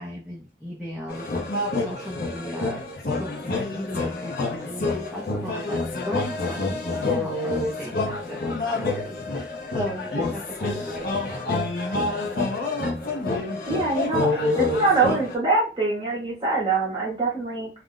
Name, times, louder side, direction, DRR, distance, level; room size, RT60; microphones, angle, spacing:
voice 1, 0.0-12.3, equal, ahead, -5 dB, 0.4 m, -37 dB
sound 1, 1.1-15.4, left 3 dB, 55° left, 0.6 m, -27 dB
voice 2, 13.7-17.7, right 3 dB, 25° right, -4 dB, 0.8 m, -24 dB
2.4 x 2.1 x 3.6 m, 0.33 s
head